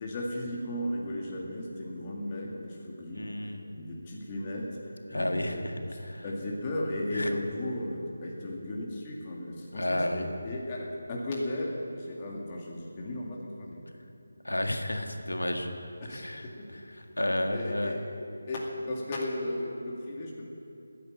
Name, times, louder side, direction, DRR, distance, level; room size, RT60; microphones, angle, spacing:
voice 1, 0.0-6.0 6.2-13.8 16.0-16.3 16.6-16.7 16.9-17.1 17.5-18.0 18.5-20.5, left 1 dB, 25° left, -2 dB, 2.1 m, -35 dB
voice 2, 3.1-3.7 5.1-5.7 6.0-6.2 7.1-7.3 9.7-10.3 14.4-15.7 16.1-16.5 17.0-17.9, left 1 dB, 80° left, 4 dB, 1.8 m, -31 dB
14.5 x 10.0 x 8.4 m, 2.7 s
figure-of-eight pair, 160°, 0 cm